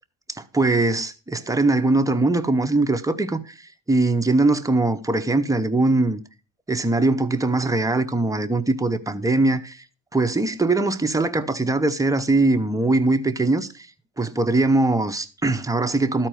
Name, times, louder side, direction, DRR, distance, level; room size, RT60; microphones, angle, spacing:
voice 1, 0.3-6.2 6.7-9.8 10.1-13.9 14.2-16.3, right 2 dB, 10° right, 0.7 m, -21 dB
13.0 x 4.4 x 6.3 m
cardioid pair, 100°, 45 cm